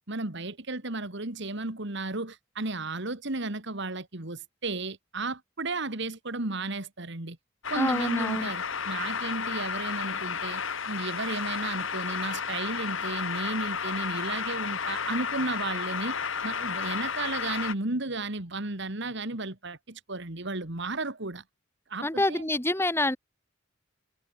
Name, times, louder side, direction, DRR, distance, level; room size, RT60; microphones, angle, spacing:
voice 1, 0.1-7.4 7.7-16.2 16.4-21.4 21.9-22.5, right 2 dB, 60° right, 2.5 m, -34 dB
sound 1, 7.6-17.7, left 6 dB, 70° left, 2.0 m, -32 dB
voice 2, 7.8-8.5 22.0-23.2, left 1 dB, 10° left, 1.7 m, -27 dB
head